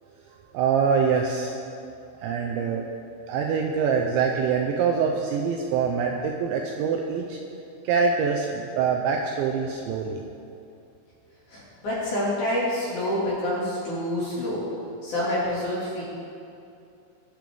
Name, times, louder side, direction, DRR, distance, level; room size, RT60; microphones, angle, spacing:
voice 1, 0.5-1.9 2.2-3.0 3.3-7.4 7.8-10.2, right 6 dB, 85° right, 1 dB, 2.7 m, -25 dB
voice 2, 11.5-14.6 15.0-16.0, left 1 dB, 50° left, -7 dB, 2.8 m, -27 dB
22.0 x 7.7 x 3.5 m, 2.6 s
omnidirectional pair, 5.9 m